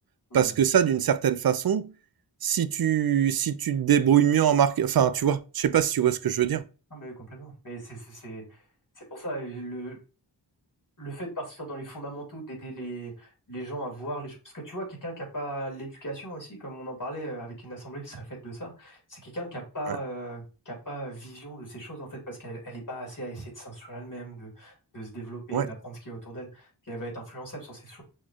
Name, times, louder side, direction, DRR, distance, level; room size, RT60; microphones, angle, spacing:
voice 1, 0.3-1.9 2.4-6.6 25.5-25.7, right 9 dB, 55° right, 0.5 m, -23 dB
voice 2, 6.9-8.6 9.0-10.0 11.0-28.0, right 1 dB, 45° left, 2.6 m, -38 dB
6.1 x 3.1 x 2.4 m
cardioid pair, 45°, 43 cm